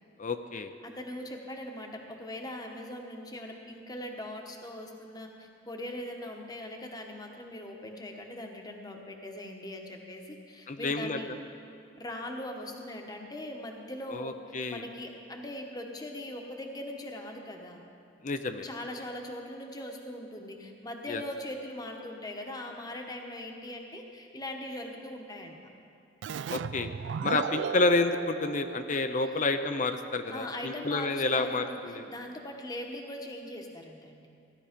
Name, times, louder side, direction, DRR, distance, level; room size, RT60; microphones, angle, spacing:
voice 1, 0.2-0.7 10.7-11.2 14.1-14.8 18.2-18.7 21.1-21.2 26.5-26.9 27.2-32.1, left 3 dB, 45° left, 8 dB, 0.6 m, -29 dB
voice 2, 0.8-11.3 12.0-14.4 14.7-17.8 18.6-25.6 30.3-31.8 32.1-34.3, left 1 dB, 20° left, 2 dB, 1.1 m, -40 dB
Keyboard (musical), 26.2-29.6, right 7 dB, 75° right, 0.3 m, -36 dB
16.0 x 11.0 x 5.2 m, 2.5 s
head